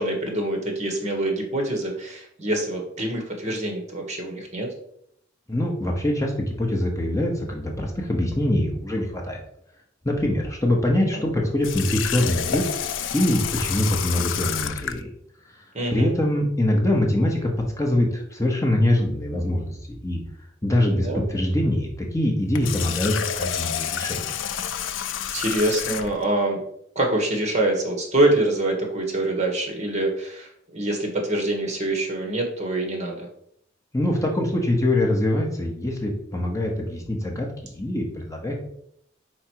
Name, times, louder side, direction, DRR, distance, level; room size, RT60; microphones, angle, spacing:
voice 1, 0.0-4.7 11.1-11.2 15.7-16.1 20.9-21.2 24.7-24.9 25.3-26.6 26.9-33.3, right 1 dB, 40° right, 2 dB, 1.3 m, -25 dB
voice 2, 5.5-9.4 10.0-12.7 13.1-15.1 15.9-19.8 20.0-20.2 20.6-24.2 33.9-38.6, left 1 dB, 15° left, 0 dB, 0.9 m, -23 dB
Water tap faucet, 11.6-15.0 22.4-26.3, left 9 dB, 75° left, 0.4 m, -29 dB
5.0 x 4.5 x 4.6 m, 0.72 s
head